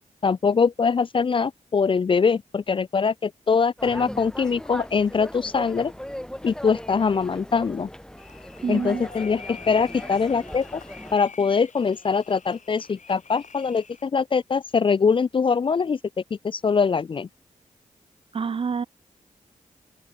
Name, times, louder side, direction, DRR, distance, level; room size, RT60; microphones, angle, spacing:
voice 1, 0.2-5.9 6.4-7.9 8.7-10.8 11.1-16.0 16.4-17.3, left 5 dB, 40° left, 0.4 m, -23 dB
sound 1, 3.8-11.2, equal, 5° left, 3.7 m, -39 dB
sound 2, 8.2-14.0, left 5 dB, 60° left, 5.2 m, -45 dB
voice 2, 8.6-9.0 18.3-18.9, right 5 dB, 40° right, 0.4 m, -27 dB
open air
cardioid pair, 65°, 14 cm